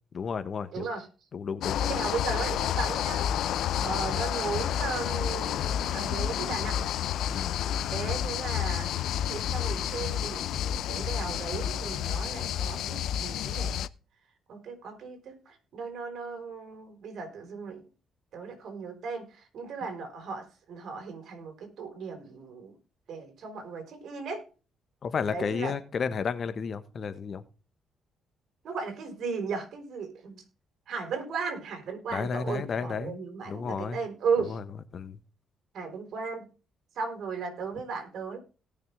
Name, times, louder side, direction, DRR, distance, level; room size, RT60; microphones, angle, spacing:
voice 1, 0.1-0.9 1.3-1.8 3.8-4.0 7.3-7.6 25.0-27.4 32.1-33.2 33.5-34.0 34.5-34.6 34.9-35.2, left 6 dB, 50° left, 1.4 m, -32 dB
voice 2, 0.7-1.1 1.8-3.3 3.8-6.8 7.9-8.9 9.3-13.8 14.5-17.9 18.3-22.8 23.1-24.4 25.3-25.8 28.6-30.4 30.9-34.6 35.7-36.5 37.0-38.4, right 5 dB, 65° right, 5.2 m, -36 dB
sound 1, 1.6-13.9, left 10 dB, 80° left, 0.6 m, -30 dB
18.0 x 6.7 x 3.6 m
cardioid pair, 90°, 0 cm